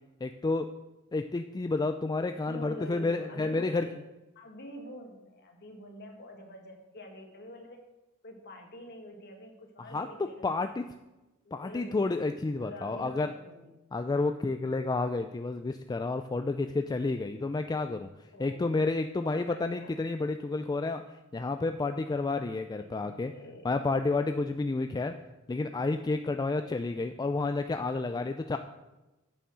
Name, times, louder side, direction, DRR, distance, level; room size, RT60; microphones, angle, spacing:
voice 1, 0.2-0.7 1.1-3.8 9.9-10.1 10.4-10.8 11.5-13.3 13.9-18.1 18.4-21.0 21.3-23.3 23.6-25.1 25.5-28.6, left 3 dB, 20° left, 7 dB, 0.3 m, -30 dB
voice 2, 2.5-3.9 4.4-7.8 8.2-10.8 11.4-12.1 12.6-13.8 18.3-18.8 19.2-19.9 22.8-23.7 28.1-28.6, left 1 dB, 50° left, 3 dB, 1.8 m, -46 dB
9.1 x 7.0 x 6.2 m, 1.0 s
head